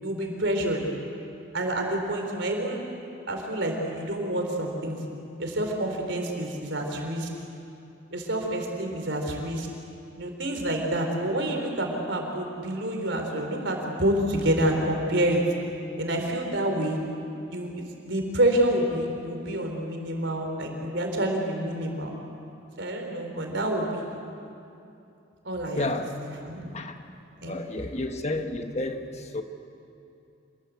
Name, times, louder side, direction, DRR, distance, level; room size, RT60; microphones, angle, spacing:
voice 1, 0.0-0.8 1.5-2.8 3.3-5.0 5.4-7.3 8.1-9.7 10.2-15.4 16.0-17.0 17.5-22.2 22.8-24.0 25.4-25.9 26.2-26.7 27.4-27.8, right 1 dB, 65° right, 4.1 m, -28 dB
voice 2, 25.7-26.1 26.7-26.9 27.4-29.4, left 2 dB, 35° left, 1.2 m, -31 dB
27.0 x 19.5 x 8.4 m
head